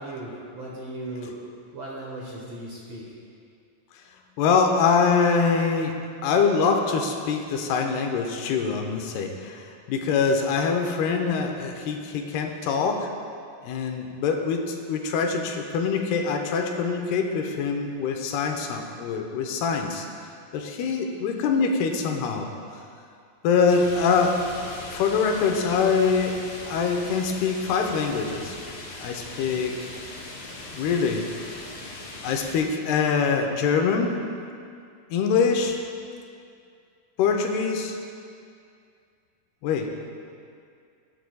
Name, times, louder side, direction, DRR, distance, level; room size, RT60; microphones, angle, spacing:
voice 1, 0.0-1.4 1.7-3.0 29.2-29.6, right 1 dB, 70° right, -5 dB, 1.6 m, -37 dB
voice 2, 4.4-5.9 6.2-13.1 13.6-20.1 20.5-22.5 23.4-26.3 26.7-28.6 29.0-30.0 30.7-31.3 32.2-34.1 35.1-35.8 37.2-38.0 39.6-39.9, left 5 dB, 85° left, 3 dB, 2.8 m, -24 dB
sound 1, 23.7-32.6, left 2 dB, 60° left, 2.5 m, -40 dB
19.5 x 8.2 x 2.3 m, 2.3 s
omnidirectional pair, 4.5 m